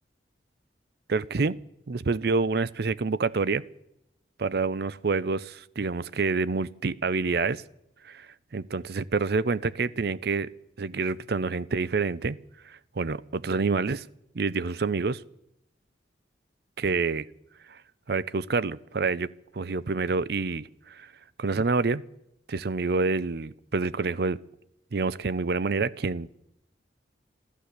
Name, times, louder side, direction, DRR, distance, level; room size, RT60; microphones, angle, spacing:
voice 1, 1.1-1.6 1.9-3.6 4.4-7.6 8.0-8.3 8.5-10.5 10.8-12.4 12.7-14.1 14.3-15.2 16.8-17.3 17.7-17.8 18.1-19.3 19.5-21.1 21.4-22.0 22.5-24.4 24.9-26.3, right 4 dB, 60° right, 19 dB, 0.5 m, -27 dB
14.0 x 13.0 x 8.1 m, 0.81 s
head